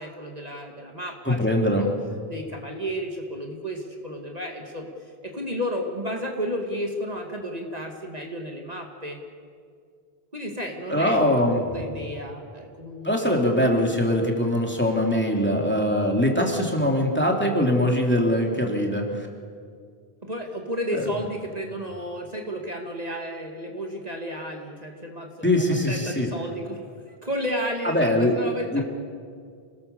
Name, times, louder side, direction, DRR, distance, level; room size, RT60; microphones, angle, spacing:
voice 1, 0.0-1.9 2.3-4.9 5.2-9.2 10.3-13.3 20.2-28.8, equal, 40° right, 1 dB, 2.4 m, -32 dB
voice 2, 1.2-1.9 10.9-11.8 13.0-19.3 21.0-21.1 25.4-26.3 27.8-28.3 28.7-28.8, left 1 dB, 10° left, 0 dB, 3.1 m, -22 dB
28.0 x 19.5 x 7.0 m, 2.1 s
omnidirectional pair, 1.0 m